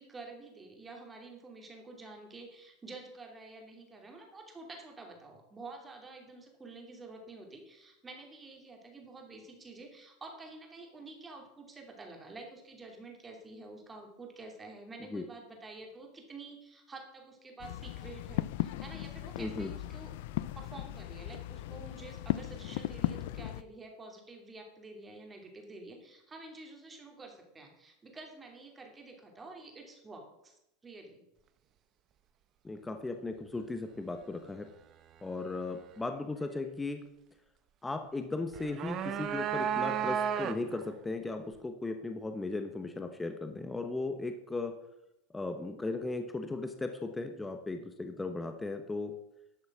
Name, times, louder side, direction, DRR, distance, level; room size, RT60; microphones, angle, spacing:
voice 1, 0.0-20.1 20.4-31.2, right 3 dB, 15° right, 2 dB, 2.8 m, -49 dB
sound 1, 17.6-23.6, left 15 dB, 70° left, 0.4 m, -37 dB
voice 2, 19.4-19.7 32.6-34.7 35.2-37.0 37.8-44.7 45.3-49.1, left 3 dB, 10° left, 6 dB, 1.0 m, -37 dB
sound 2, 38.5-40.9, right 8 dB, 40° right, 0.9 m, -32 dB
11.5 x 6.3 x 6.2 m, 0.85 s
supercardioid pair, 125°, 0 cm